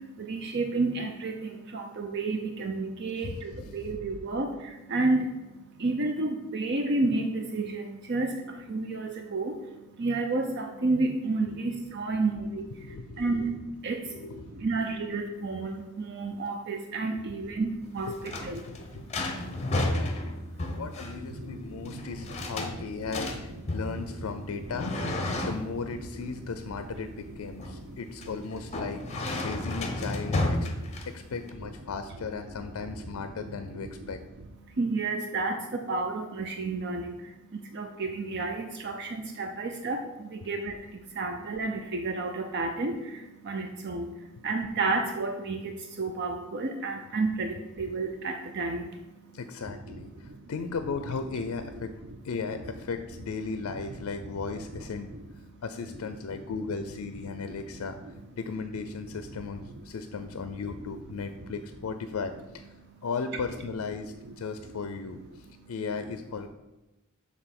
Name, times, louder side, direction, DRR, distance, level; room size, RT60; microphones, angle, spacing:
voice 1, 0.3-1.4 1.7-4.5 4.9-5.2 5.8-7.8 8.1-8.3 8.7-9.5 10.0-12.6 13.2-13.5 13.8-14.0 14.6-15.7 16.1-18.1 18.4-18.6 24.5-24.6 34.8-37.1 37.7-40.0 40.5-40.7 41.2-42.9 43.5-44.1 44.4-45.7 46.0-48.8, right 3 dB, 50° right, 4 dB, 0.5 m, -30 dB
voice 2, 3.2-4.0 11.5-11.7 12.4-13.5 14.0-14.6 17.3-17.4 18.1-18.3 18.7-19.0 19.8-20.2 20.8-24.9 25.4-30.6 31.1-34.2 49.3-51.9 52.2-55.1 55.6-62.7 63.0-66.5, left 4 dB, 80° left, 8 dB, 0.4 m, -36 dB
sound 1, 17.8-31.5, left 2 dB, 30° left, 0.7 m, -33 dB
6.8 x 3.6 x 5.8 m, 1.0 s
head